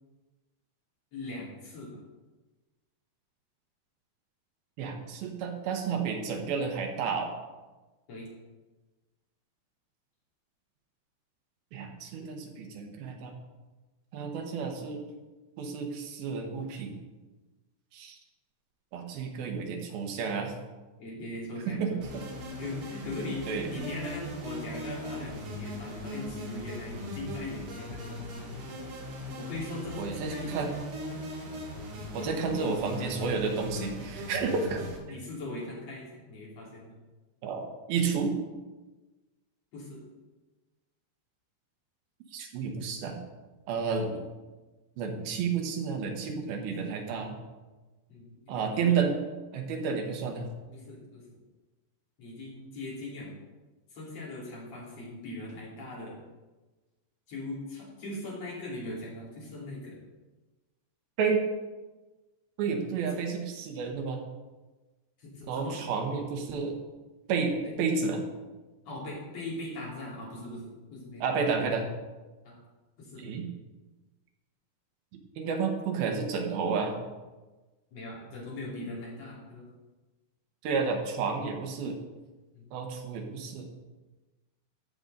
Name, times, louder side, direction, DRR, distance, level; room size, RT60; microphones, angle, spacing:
voice 1, 1.1-2.0 8.1-8.3 21.0-22.0 22.5-28.5 29.4-30.7 31.9-32.6 33.7-33.9 34.6-34.7 35.1-37.0 39.7-40.0 46.8-46.9 48.1-49.0 50.7-51.2 52.2-53.3 53.9-56.2 57.3-60.0 63.0-63.2 65.2-65.8 67.6-67.7 68.8-71.2 72.5-72.6 73.0-73.2 77.9-79.7 82.5-82.7, left 2 dB, 40° left, -5 dB, 3.6 m, -40 dB
voice 2, 4.8-7.3 11.7-13.3 14.1-15.0 15.6-16.9 17.9-18.2 18.9-20.5 21.7-22.2 23.5-23.7 30.0-30.7 32.1-34.8 37.4-38.3 42.3-43.2 43.7-44.2 45.0-47.4 48.5-49.2 49.5-50.5 61.2-61.4 62.6-64.2 65.5-66.7 67.3-68.2 71.2-71.9 73.2-73.5 75.4-76.9 80.6-82.0 82.7-83.7, right 5 dB, 70° right, 2 dB, 2.9 m, -31 dB
sound 1, 22.0-35.0, equal, 50° right, 1.6 m, -39 dB
14.0 x 6.9 x 3.9 m, 1.2 s
omnidirectional pair, 4.7 m